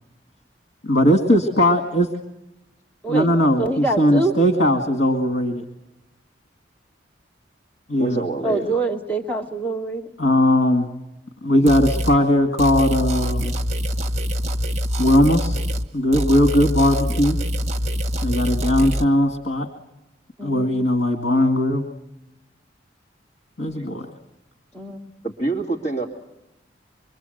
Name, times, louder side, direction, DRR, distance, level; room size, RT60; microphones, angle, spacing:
voice 1, 0.8-2.1 3.1-5.6 7.9-8.2 10.2-10.9 11.4-13.5 15.0-15.6 15.9-17.4 18.2-19.7 20.4-21.8 23.6-24.1, left 1 dB, 75° left, 4 dB, 2.2 m, -19 dB
voice 2, 3.6-4.3 8.4-10.1 11.5-11.7 20.4-20.8 24.7-25.0, right 2 dB, 10° left, -1 dB, 2.3 m, -25 dB
voice 3, 8.0-8.7 25.2-26.1, right 3 dB, 40° left, -1 dB, 2.5 m, -26 dB
sound 1, 11.7-12.2 12.6-15.9 16.1-19.1, equal, 35° right, 1.1 m, -24 dB
26.5 x 23.0 x 8.0 m, 0.93 s
head